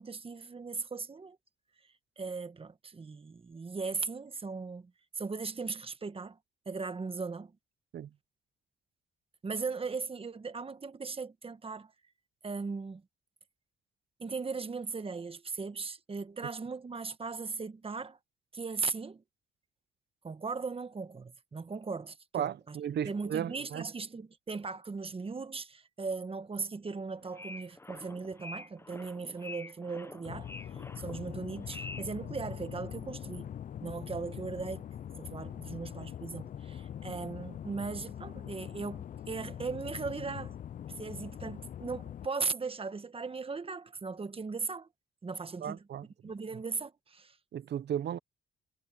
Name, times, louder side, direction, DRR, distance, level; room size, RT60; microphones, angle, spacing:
voice 1, 0.0-1.4 2.2-6.4 6.6-7.5 9.4-11.9 12.4-13.0 14.2-18.2 18.5-19.2 20.2-22.8 23.0-33.5 33.8-34.9 35.2-40.6 41.0-44.9 45.2-45.8 46.2-47.4, right 4 dB, 30° right, 1.4 m, -38 dB
voice 2, 22.3-23.9 45.6-46.1 47.5-48.2, right 9 dB, 60° right, 0.8 m, -35 dB
sound 1, 27.1-32.2, left 2 dB, 10° left, 0.9 m, -47 dB
sound 2, 30.2-42.3, left 9 dB, 45° left, 0.4 m, -43 dB
cardioid pair, 90°, 20 cm